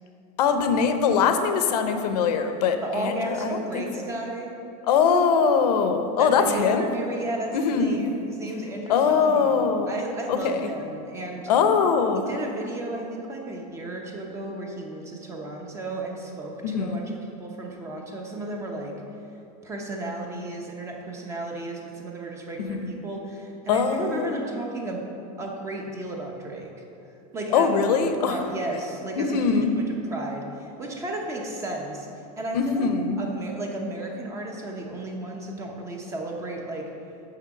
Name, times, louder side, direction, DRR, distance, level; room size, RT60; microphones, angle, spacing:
voice 1, 0.4-3.9 4.9-6.9 7.5-8.0 8.9-9.9 10.3-10.7 11.5-12.3 16.6-17.0 22.6-22.9 23.7-24.3 27.5-28.4 29.2-29.7 32.5-33.2, left 6 dB, 85° left, 7 dB, 0.8 m, -22 dB
voice 2, 2.8-4.5 6.2-9.5 9.9-11.5 12.3-18.9 19.6-25.0 25.4-26.7 27.3-27.7 28.1-32.1 32.4-32.9 33.2-36.8, right 1 dB, 15° right, 1 dB, 0.6 m, -34 dB
6.6 x 5.8 x 5.9 m, 2.9 s
supercardioid pair, 170°, 20 cm